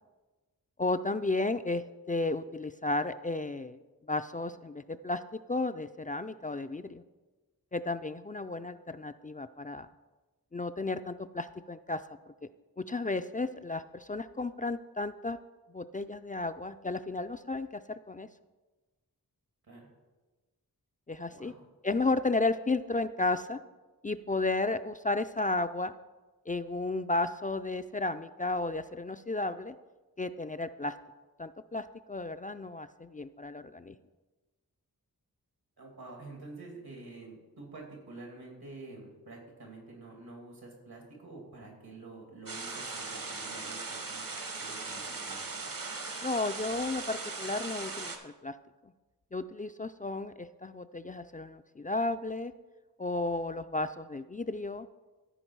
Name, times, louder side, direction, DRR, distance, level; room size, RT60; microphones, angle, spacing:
voice 1, 0.8-3.8 4.1-5.2 5.5-7.0 7.7-9.9 10.5-12.0 12.4-12.5 12.8-15.4 15.7-18.3 21.1-21.5 21.8-23.6 24.0-25.9 26.5-29.7 30.2-31.0 31.4-34.0 46.2-48.6 49.3-52.5 53.0-54.9, left 2 dB, 25° left, 10 dB, 0.3 m, -33 dB
voice 2, 21.3-21.6 35.8-44.2 44.5-45.4, right 3 dB, 85° right, 1 dB, 2.6 m, -48 dB
sound 1, 42.5-48.2, right 4 dB, 65° right, 1.3 m, -39 dB
14.0 x 4.8 x 4.6 m, 1.2 s
wide cardioid pair, 55°, 36 cm